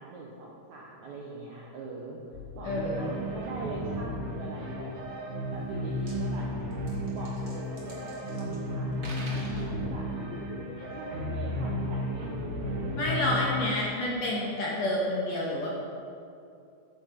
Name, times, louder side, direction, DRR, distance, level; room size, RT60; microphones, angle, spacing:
voice 1, 0.0-2.2 2.5-5.1 5.5-6.5 7.1-10.1 11.0-13.5, right 2 dB, 70° right, -3 dB, 1.8 m, -42 dB
sound 1, 2.3-3.9 9.5-12.6, left 5 dB, 85° left, 2.6 m, -46 dB
voice 2, 2.6-3.1 13.0-15.7, left 1 dB, 60° left, -4 dB, 1.9 m, -29 dB
sound 2, 2.6-13.9, left 1 dB, 50° right, 1.8 m, -33 dB
sound 3, 5.6-5.7 5.9-6.2 6.7-8.6 8.9-9.7, right 1 dB, 35° right, 2.2 m, -45 dB
13.0 x 8.7 x 4.5 m, 2.5 s
omnidirectional pair, 4.7 m